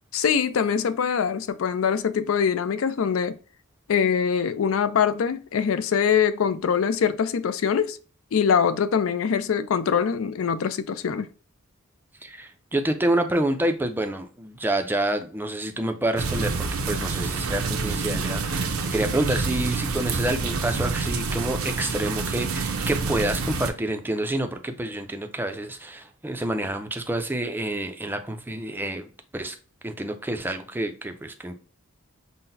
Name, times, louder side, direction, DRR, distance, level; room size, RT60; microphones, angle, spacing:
voice 1, 0.1-3.4 3.9-8.0 8.3-11.3, left 7 dB, 70° left, 0.4 m, -23 dB
voice 2, 12.2-16.5 16.9-29.6 29.8-31.6, right 1 dB, 10° right, 0.4 m, -28 dB
sound 1, 16.2-23.7, right 4 dB, 85° right, 0.6 m, -27 dB
5.7 x 2.1 x 2.6 m
head